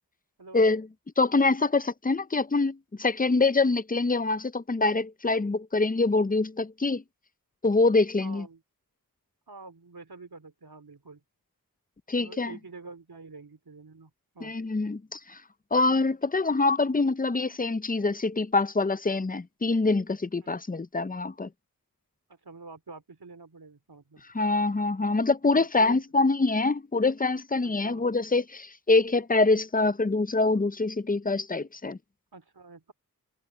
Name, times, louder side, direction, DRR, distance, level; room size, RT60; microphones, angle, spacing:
voice 1, 0.5-0.9 1.2-7.0 7.6-8.4 12.1-12.5 14.4-15.4 15.7-21.5 24.3-32.0, left 3 dB, 25° left, 0.6 m, -25 dB
voice 2, 8.2-8.6 9.5-11.2 12.2-14.6 20.4-20.5 22.3-24.2 25.6-26.0 27.6-28.1 32.3-32.9, right 3 dB, 85° right, 3.3 m, -47 dB
wide cardioid pair, 55°, 36 cm